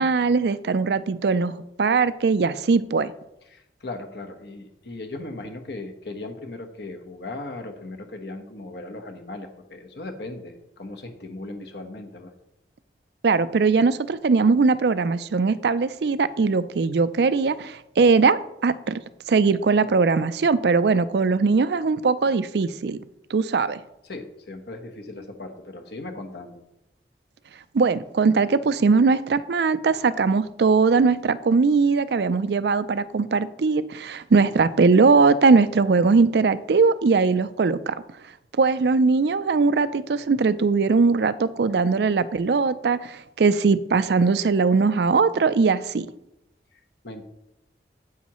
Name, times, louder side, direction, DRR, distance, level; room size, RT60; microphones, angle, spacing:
voice 1, 0.0-3.1 13.2-19.0 19.3-23.0 23.3-23.8 27.7-37.9 38.6-46.1, right 4 dB, 70° right, 14 dB, 0.4 m, -20 dB
voice 2, 3.5-12.3 24.0-26.6 46.7-47.2, left 2 dB, 70° left, 5 dB, 1.1 m, -38 dB
9.5 x 8.4 x 3.0 m, 0.86 s
head